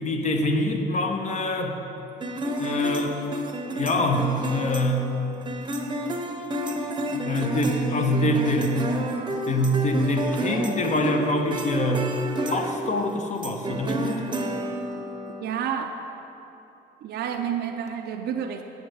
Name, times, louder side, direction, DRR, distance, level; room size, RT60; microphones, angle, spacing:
voice 1, 0.0-1.8 2.6-3.2 3.7-5.1 7.1-8.8 9.4-12.1 12.4-14.1, left 1 dB, 40° left, 4 dB, 0.9 m, -25 dB
sound 1, 2.2-15.4, right 1 dB, 25° right, 0.8 m, -30 dB
voice 2, 15.4-16.0 17.0-18.6, right 8 dB, 60° right, 4 dB, 0.5 m, -29 dB
8.6 x 6.7 x 4.7 m, 3.0 s
supercardioid pair, 80°, 19 cm